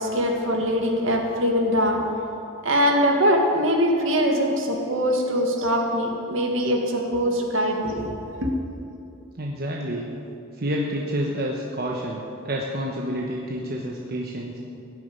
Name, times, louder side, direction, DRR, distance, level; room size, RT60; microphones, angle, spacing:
voice 1, 0.0-2.0 2.6-8.5, equal, 70° right, 2 dB, 2.0 m, -22 dB
voice 2, 9.4-10.1 10.6-14.6, equal, 45° right, -2 dB, 1.2 m, -29 dB
16.0 x 7.2 x 9.5 m, 2.7 s
head